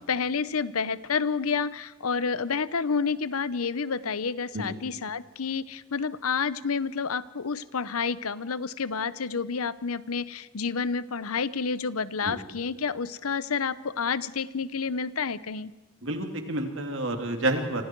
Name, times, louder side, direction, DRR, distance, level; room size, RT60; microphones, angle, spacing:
voice 1, 0.0-15.7, left 5 dB, 85° left, 17 dB, 0.8 m, -29 dB
voice 2, 16.0-17.8, right 1 dB, 60° right, 4 dB, 3.0 m, -29 dB
28.5 x 25.5 x 4.7 m, 1.2 s
head